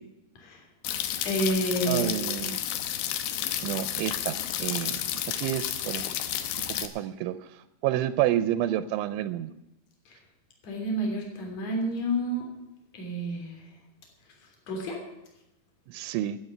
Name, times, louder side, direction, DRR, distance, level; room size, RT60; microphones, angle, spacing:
sound 1, 0.8-6.9, left 11 dB, 85° left, 2.0 m, -31 dB
voice 1, 1.3-2.0 10.6-12.4 12.9-13.6 14.7-15.0, equal, 40° left, 1 dB, 3.9 m, -29 dB
voice 2, 1.9-2.6 3.6-6.1 6.7-9.5 15.9-16.4, right 13 dB, 85° right, 13 dB, 3.0 m, -30 dB
13.0 x 8.6 x 9.9 m, 0.89 s
omnidirectional pair, 5.4 m